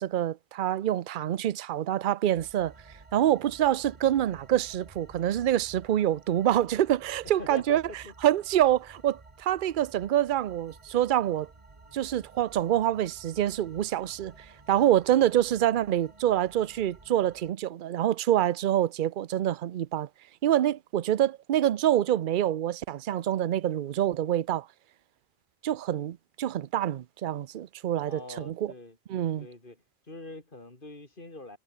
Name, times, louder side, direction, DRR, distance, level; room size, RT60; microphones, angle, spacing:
voice 1, 0.0-2.7 3.1-7.8 8.2-11.5 11.9-20.1 20.4-24.7 25.6-28.7 29.1-29.5, right 12 dB, 55° right, 0.7 m, -26 dB
sound 1, 2.3-17.5, right 3 dB, 30° right, 1.6 m, -53 dB
voice 2, 7.4-8.1 28.0-29.0 29.4-29.8 30.1-31.6, left 2 dB, 55° left, 3.8 m, -43 dB
omnidirectional pair, 1.1 m